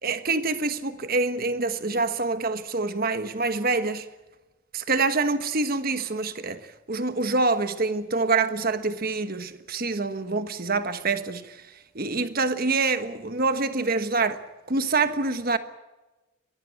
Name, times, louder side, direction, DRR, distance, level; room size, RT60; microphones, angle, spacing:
voice 1, 0.0-4.1 4.7-6.6 6.9-11.6 11.9-14.4 14.7-15.6, right 3 dB, 45° right, 1.4 m, -26 dB
22.5 x 18.5 x 8.7 m
head